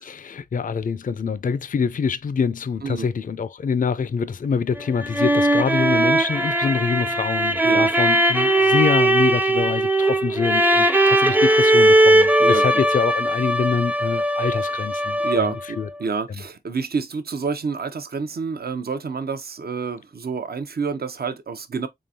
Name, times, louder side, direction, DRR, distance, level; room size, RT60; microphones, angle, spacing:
voice 1, 0.0-15.5 15.8-15.9, left 6 dB, 50° left, 0.4 m, -25 dB
sound 1, 4.8-15.6, right 1 dB, 10° right, 0.5 m, -19 dB
voice 2, 15.2-21.9, right 5 dB, 65° right, 0.6 m, -28 dB
3.7 x 3.4 x 2.7 m
wide cardioid pair, 55°, 17 cm